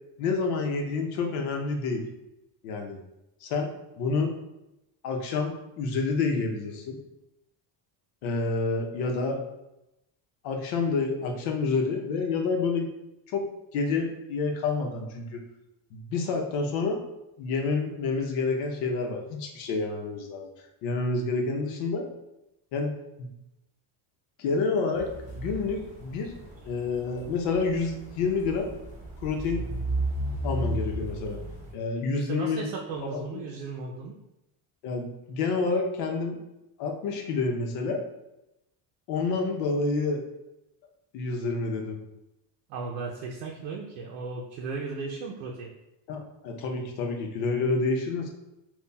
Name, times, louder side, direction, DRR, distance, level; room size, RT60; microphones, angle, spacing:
voice 1, 0.2-2.0 2.6-3.0 3.4-3.7 4.0-4.3 5.0-7.0 8.2-9.4 10.4-12.9 13.3-15.4 15.9-17.0 17.4-20.5 20.8-22.1 22.7-22.9 23.2-23.3 24.4-26.3 26.6-28.7 29.2-29.6 30.4-31.4 31.7-32.6 33.0-33.4 34.8-36.4 36.8-38.0 39.1-40.2 41.1-42.0 46.1-48.3, left 4 dB, 90° left, 2 dB, 0.8 m, -28 dB
sound 1, 24.9-31.7, right 1 dB, 15° right, 1.3 m, -34 dB
voice 2, 32.1-34.2 42.7-45.7, right 4 dB, 85° right, -1 dB, 0.6 m, -36 dB
5.4 x 2.3 x 2.2 m, 0.91 s
cardioid pair, 120°, 50 cm